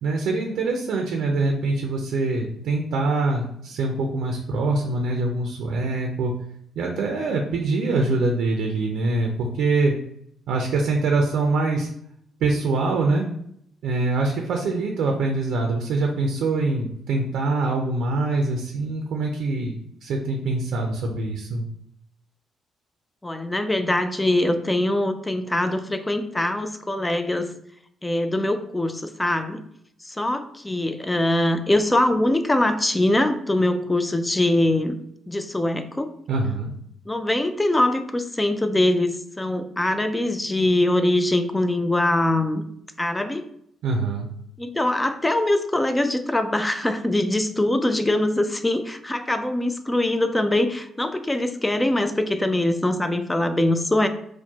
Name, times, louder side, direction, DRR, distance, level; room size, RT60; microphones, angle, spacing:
voice 1, 0.0-6.3 6.8-9.9 10.5-11.9 12.4-13.3 13.8-21.6 36.3-36.7 43.8-44.3, right 3 dB, 75° right, 2 dB, 0.5 m, -24 dB
voice 2, 23.2-27.5 28.0-29.6 30.0-35.0 35.3-36.1 37.1-42.6 43.0-43.4 44.6-54.1, left 1 dB, 15° left, 9 dB, 0.3 m, -23 dB
4.5 x 2.1 x 2.8 m, 0.71 s
cardioid pair, 90°, 0 cm